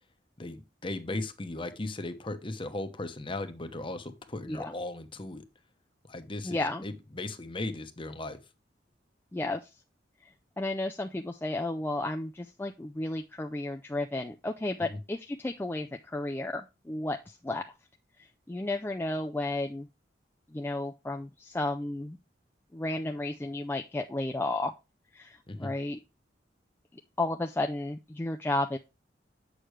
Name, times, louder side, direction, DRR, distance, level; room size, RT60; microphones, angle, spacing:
voice 1, 0.4-5.4 6.0-8.4 14.8-15.0 25.5-25.7, left 2 dB, 30° left, 9 dB, 0.9 m, -37 dB
voice 2, 6.4-6.8 9.3-9.7 10.2-17.7 18.2-19.9 20.5-22.2 22.7-24.7 25.1-26.0 27.2-28.8, left 2 dB, 15° left, 4 dB, 0.4 m, -33 dB
7.5 x 6.5 x 3.2 m, 0.26 s
head